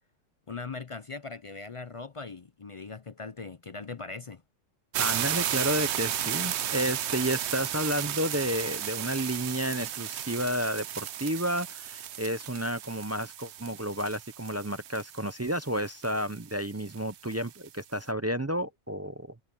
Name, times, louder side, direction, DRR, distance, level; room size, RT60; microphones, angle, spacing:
voice 1, 0.5-4.4, left 4 dB, 50° left, 0.4 m, -40 dB
sound 1, 4.9-17.7, right 10 dB, 60° right, 0.9 m, -34 dB
voice 2, 5.0-19.3, equal, 25° right, 0.3 m, -31 dB
omnidirectional pair, 1.4 m